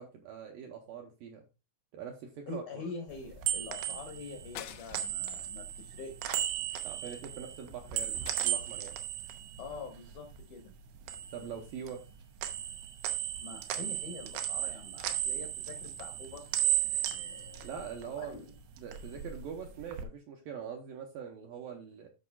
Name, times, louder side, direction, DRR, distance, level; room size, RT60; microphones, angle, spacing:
voice 1, 0.0-1.5 1.9-2.8 6.8-9.0 11.3-12.1 17.6-18.4 18.8-22.1, right 7 dB, 75° right, 3 dB, 2.1 m, -43 dB
voice 2, 2.5-6.5 9.6-10.8 13.4-17.9 18.2-18.6, left 4 dB, 70° left, 3 dB, 1.9 m, -45 dB
sound 1, 3.1-10.4 10.7-12.1 12.4-18.4 18.7-20.0, right 12 dB, 90° right, 3.0 m, -35 dB
sound 2, 4.6-5.3 5.8-6.0 6.3-7.3 8.3-9.0, left 12 dB, 90° left, 2.1 m, -49 dB
13.0 x 4.8 x 2.3 m, 0.29 s
omnidirectional pair, 4.8 m